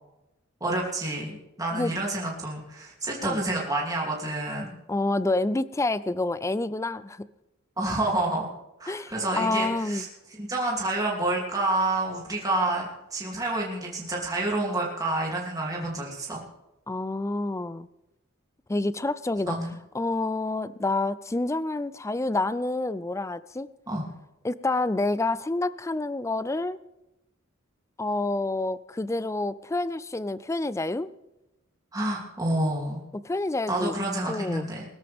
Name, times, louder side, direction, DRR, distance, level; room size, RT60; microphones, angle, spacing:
voice 1, 0.6-4.7 7.8-8.5 8.8-10.1 10.4-12.9 13.1-16.4 19.5-19.7 23.9-24.1 31.9-33.0 33.7-34.9, right 2 dB, 20° right, -3 dB, 2.8 m, -28 dB
voice 2, 4.9-7.3 8.9-10.1 16.9-17.9 18.7-19.6 19.9-23.7 24.4-26.8 28.0-31.1 33.1-33.9 34.3-34.7, left 2 dB, 15° left, 16 dB, 0.4 m, -28 dB
22.0 x 13.5 x 3.5 m, 0.95 s
head